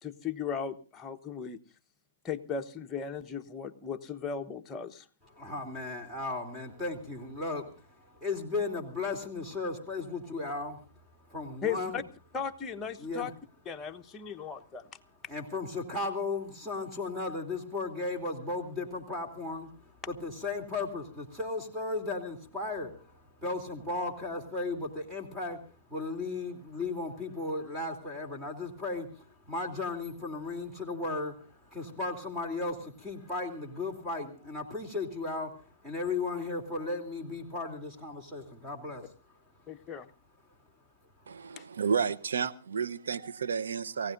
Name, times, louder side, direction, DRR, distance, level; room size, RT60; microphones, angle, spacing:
voice 1, 0.0-1.6 2.2-5.0 11.6-12.0 12.3-13.3 13.7-14.8 39.7-40.1 41.6-41.7, left 6 dB, 15° left, 1.1 m, -36 dB
voice 2, 5.4-10.8 11.3-12.0 13.0-13.3 15.3-39.0, left 3 dB, 10° right, 3.1 m, -35 dB
voice 3, 41.3-44.1, right 6 dB, 80° right, 0.9 m, -31 dB
28.5 x 16.0 x 2.6 m
hypercardioid pair, 135°, 0 cm